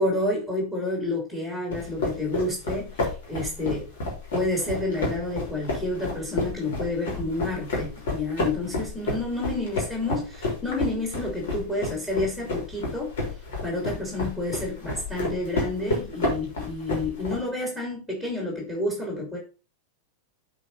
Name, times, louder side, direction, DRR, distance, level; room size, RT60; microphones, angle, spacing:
voice 1, 0.0-3.9 4.3-13.1 13.6-19.4, left 2 dB, 10° left, 0 dB, 3.2 m, -29 dB
sound 1, 1.7-17.4, left 2 dB, 55° left, 3.6 m, -31 dB
8.4 x 4.2 x 4.9 m, 0.34 s
figure-of-eight pair, 90°, 0 cm